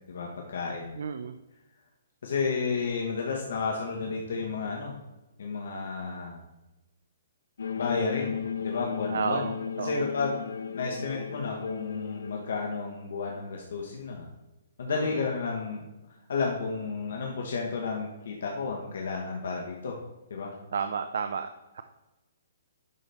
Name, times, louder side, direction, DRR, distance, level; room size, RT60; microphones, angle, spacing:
voice 1, 0.1-1.0 2.2-5.0 5.4-6.4 7.8-9.5 9.8-14.3 14.8-15.9 16.3-20.0 20.3-20.5, left 4 dB, 60° left, 0 dB, 1.2 m, -32 dB
voice 2, 1.0-1.3 9.1-10.0 14.8-15.2 20.7-21.8, right 6 dB, 55° right, 9 dB, 0.4 m, -32 dB
sound 1, 7.6-12.7, left 7 dB, 85° left, 0.5 m, -35 dB
11.0 x 4.1 x 3.5 m, 1.0 s
hypercardioid pair, 180°, 0 cm